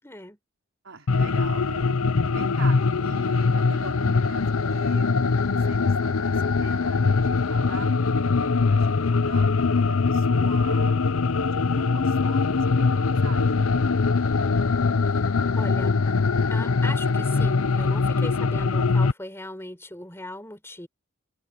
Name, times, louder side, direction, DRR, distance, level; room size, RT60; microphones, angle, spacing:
voice 1, 0.0-0.4 15.1-15.3 15.5-16.0 16.5-20.9, left 1 dB, 10° left, 4.8 m, -38 dB
voice 2, 0.8-2.0 2.3-5.1 5.6-7.9 8.7-11.1 11.5-13.7 18.4-18.8, right 3 dB, 65° right, 4.8 m, -42 dB
sound 1, 1.1-19.1, left 4 dB, 90° left, 0.7 m, -22 dB
open air
head